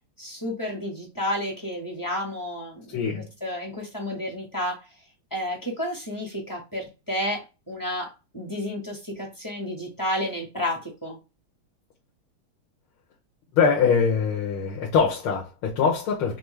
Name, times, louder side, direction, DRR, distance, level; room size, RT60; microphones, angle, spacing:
voice 1, 0.2-3.1 3.4-4.8 5.3-11.2, left 1 dB, 10° left, 1.0 m, -31 dB
voice 2, 2.9-3.3 13.5-16.4, left 6 dB, 75° left, 1.7 m, -23 dB
5.8 x 2.2 x 3.2 m
omnidirectional pair, 2.4 m